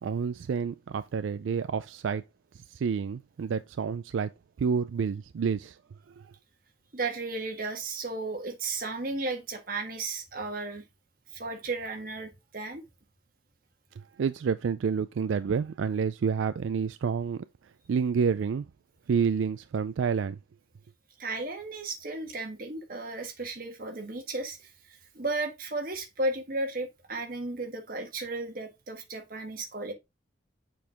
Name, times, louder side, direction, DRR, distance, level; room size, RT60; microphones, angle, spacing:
voice 1, 0.0-2.2 2.5-4.3 4.6-5.8 6.1-6.3 14.0-17.5 17.9-18.7 19.1-20.4, right 6 dB, 85° right, 0.4 m, -29 dB
voice 2, 6.9-10.8 11.3-12.8 21.2-29.9, right 2 dB, 50° right, 1.5 m, -34 dB
7.1 x 4.6 x 3.4 m
head